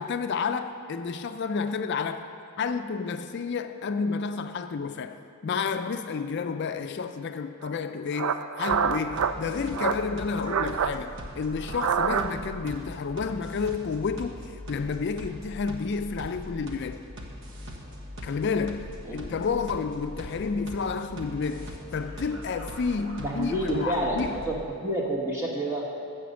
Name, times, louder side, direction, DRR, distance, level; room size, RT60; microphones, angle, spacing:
voice 1, 0.0-2.2 2.6-5.2 5.4-14.4 14.7-17.0 18.2-18.9 19.1-24.3, left 5 dB, 50° left, 0.4 m, -30 dB
sound 1, 7.6-7.7 8.1-9.3 9.7-10.0 10.3-10.9 11.6-12.5, right 7 dB, 75° right, 0.4 m, -27 dB
sound 2, 8.7-24.6, equal, 60° right, 1.3 m, -41 dB
voice 2, 23.2-24.5 24.8-25.9, right 1 dB, 10° right, 1.0 m, -29 dB
15.5 x 5.1 x 6.3 m
head